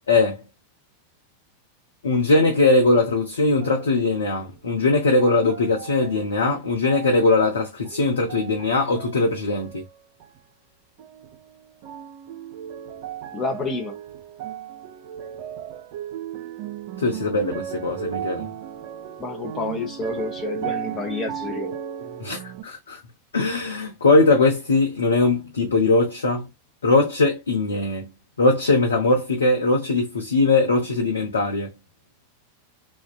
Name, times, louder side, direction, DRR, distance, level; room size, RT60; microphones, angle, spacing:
voice 1, 0.1-0.4 2.0-9.8 17.0-18.5 22.2-23.0 23.3-26.5 26.8-28.1 28.4-31.7, left 3 dB, 70° left, 0.8 m, -20 dB
sound 1, 3.6-4.6 5.2-6.2 6.8-7.5 7.8-9.2 9.5-10.4 11.0-11.5 11.8-22.6, right 9 dB, 45° right, 0.4 m, -36 dB
voice 2, 13.3-14.0 19.2-21.8, left 3 dB, 20° left, 0.9 m, -29 dB
2.6 x 2.2 x 2.3 m
figure-of-eight pair, 90°, 0 cm